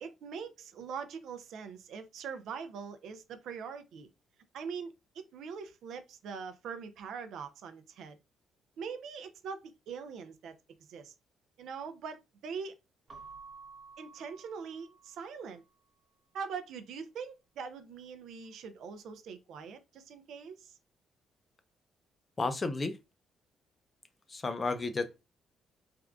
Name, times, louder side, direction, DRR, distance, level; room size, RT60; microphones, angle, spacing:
voice 1, 0.0-4.1 4.5-8.2 8.8-10.5 10.9-11.1 11.6-12.8 14.0-15.6 16.3-20.8, right 6 dB, 75° right, 0.4 m, -42 dB
Keyboard (musical) / Bell, 13.1-15.5, right 4 dB, 45° right, 0.7 m, -52 dB
voice 2, 22.4-23.0 24.3-25.2, left 3 dB, 30° left, 0.5 m, -32 dB
3.4 x 2.3 x 2.4 m
cardioid pair, 90°, 0 cm